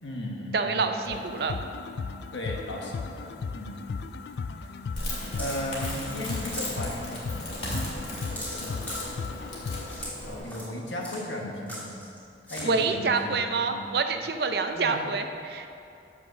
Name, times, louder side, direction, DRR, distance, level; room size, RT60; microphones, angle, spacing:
voice 1, 0.0-1.2 2.3-3.8 5.3-7.8 8.3-8.9 9.5-9.7 10.2-12.0 12.5-13.9 14.7-15.1, left 1 dB, 85° left, -1 dB, 1.3 m, -36 dB
voice 2, 0.5-1.6 12.6-15.7, right 4 dB, 60° right, 7 dB, 0.5 m, -27 dB
sound 1, 1.1-10.1, left 4 dB, 65° left, 0.3 m, -36 dB
Crackle, 5.0-10.4, left 1 dB, 35° left, 2.1 m, -37 dB
sound 2, 5.4-6.2 6.5-6.7 7.1-7.2 7.6-7.8 8.4-9.1 9.9-10.1 10.4-10.7 11.0-11.2 11.7-12.2 12.5-12.7, equal, 10° left, 2.1 m, -39 dB
7.2 x 5.9 x 6.2 m, 2.7 s
head